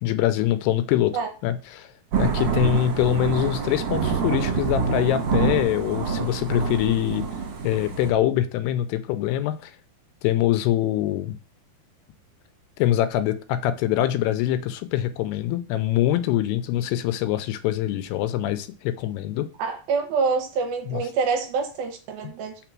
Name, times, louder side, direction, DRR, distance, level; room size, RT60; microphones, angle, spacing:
voice 1, 0.0-1.2 1.4-7.2 7.6-9.7 10.2-11.4 12.8-19.5 20.9-21.0, left 12 dB, 85° left, 2.6 m, -24 dB
Thunder / Rain, 2.1-8.1, right 5 dB, 60° right, 2.4 m, -26 dB
voice 2, 19.6-22.6, right 5 dB, 75° right, 2.5 m, -26 dB
6.0 x 3.7 x 5.9 m
omnidirectional pair, 4.7 m